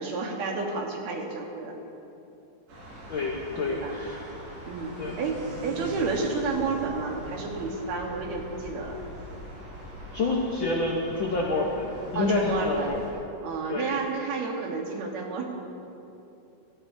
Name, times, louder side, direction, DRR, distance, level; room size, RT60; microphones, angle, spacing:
voice 1, 0.0-1.7 3.7-4.0 4.7-9.0 12.2-12.9 13.4-15.4, right 3 dB, 65° right, 1 dB, 2.4 m, -30 dB
sound 1, 2.7-13.1, right 1 dB, 85° right, 5.0 m, -42 dB
voice 2, 3.1-4.3 5.0-5.2 10.1-13.0 13.7-13.9, left 3 dB, 75° left, -2 dB, 1.1 m, -28 dB
20.5 x 14.0 x 2.7 m, 2.9 s
omnidirectional pair, 3.7 m